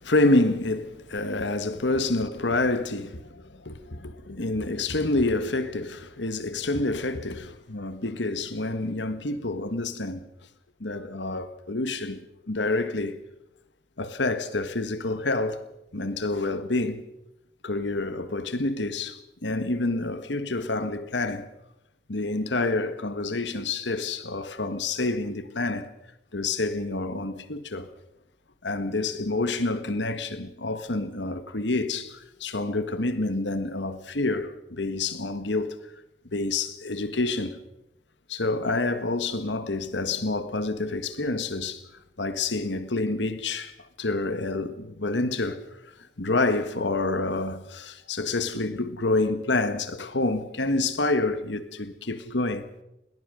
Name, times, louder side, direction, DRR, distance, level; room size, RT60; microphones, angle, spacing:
voice 1, 0.0-10.2 10.8-13.2 14.0-15.6 15.9-17.0 17.6-21.5 22.1-25.9 26.3-27.9 28.6-35.8 36.3-37.6 38.3-41.8 42.2-45.6 46.2-52.7, left 2 dB, 80° left, 1.6 m, -28 dB
21.0 x 19.5 x 6.4 m
head